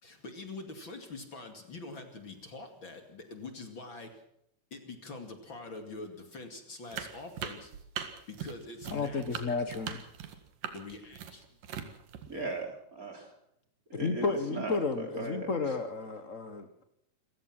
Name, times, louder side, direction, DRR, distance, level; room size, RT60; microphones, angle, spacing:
voice 1, 0.0-4.2 4.7-7.8 8.3-9.6 10.7-11.5, left 3 dB, 40° left, 5 dB, 2.9 m, -45 dB
sound 1, 6.9-12.6, right 8 dB, 75° right, 3.4 m, -40 dB
voice 2, 8.9-10.0 13.9-16.8, left 4 dB, 80° left, 8 dB, 0.7 m, -32 dB
voice 3, 12.3-13.3 13.9-15.5, right 3 dB, 25° right, 3 dB, 3.9 m, -38 dB
28.0 x 15.5 x 6.0 m, 0.74 s
omnidirectional pair, 3.8 m